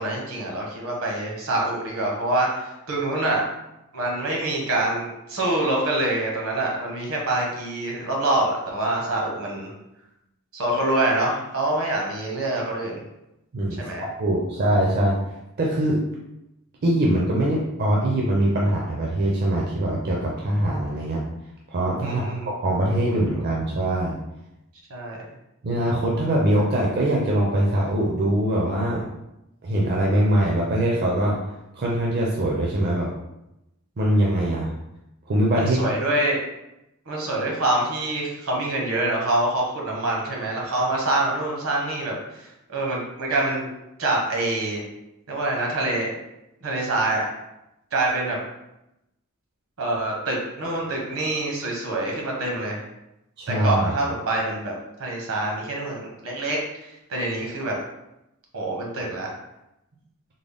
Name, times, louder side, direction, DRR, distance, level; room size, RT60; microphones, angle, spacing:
voice 1, 0.0-3.5 3.9-9.7 10.5-13.0 13.8-14.0 22.0-22.5 23.1-23.4 24.9-25.2 35.6-36.4 37.1-43.7 44.0-44.8 45.3-46.1 46.6-47.3 47.9-48.4 49.8-52.8 53.5-54.7 55.0-57.8 58.5-59.3, right 2 dB, 75° right, -1 dB, 1.0 m, -25 dB
voice 2, 14.2-15.2 15.6-16.0 16.8-21.2 21.7-24.2 25.6-29.1 29.6-31.4 31.7-33.1 34.0-34.7 35.3-35.8 53.4-53.9, right 1 dB, 50° right, -3 dB, 0.5 m, -22 dB
3.7 x 2.0 x 3.4 m, 0.89 s
head